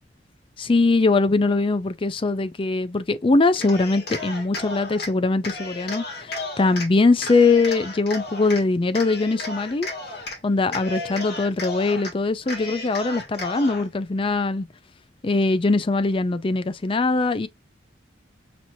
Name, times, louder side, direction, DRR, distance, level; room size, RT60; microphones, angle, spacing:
voice 1, 0.6-9.9 10.4-14.7 15.2-17.5, left 3 dB, 30° left, 0.4 m, -21 dB
Cheering, 3.6-5.1 5.4-6.9 7.2-8.6 8.9-10.4 10.7-12.1 12.4-13.9, left 2 dB, 60° left, 1.5 m, -34 dB
6.0 x 2.8 x 2.7 m
head